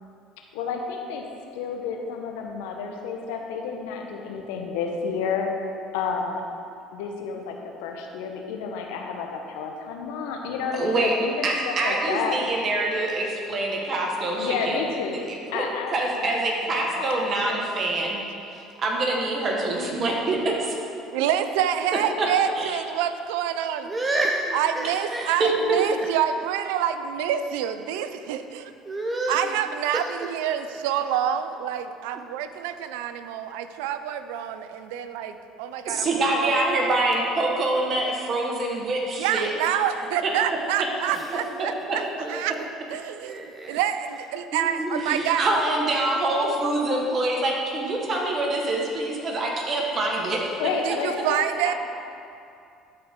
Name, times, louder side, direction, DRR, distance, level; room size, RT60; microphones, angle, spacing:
voice 1, 0.5-1.2 1.5-5.5 5.9-6.4 6.9-12.4 14.3-17.6 50.6-51.7, left 5 dB, 80° left, 2 dB, 0.9 m, -31 dB
voice 2, 10.7-11.1 11.4-14.8 15.1-15.6 15.9-18.2 18.5-20.5 22.2-22.3 22.6-22.8 25.2-25.8 35.9-39.5 40.2-40.3 40.8-40.9 41.6-42.0 45.0-50.6, right 2 dB, 45° right, -1 dB, 1.4 m, -25 dB
voice 3, 21.1-23.9 24.5-28.7 29.3-36.9 39.2-42.6 42.9-45.5 50.8-51.7, right 9 dB, 80° right, 10 dB, 0.4 m, -27 dB
voice 4, 23.8-25.3 26.0-26.1 28.8-29.5 29.9-30.0 41.1-41.5 42.2-42.6 43.2-43.8 44.5-45.2, right 2 dB, 20° right, 1 dB, 0.6 m, -29 dB
12.5 x 4.4 x 3.7 m, 2.5 s
hypercardioid pair, 75°, 0 cm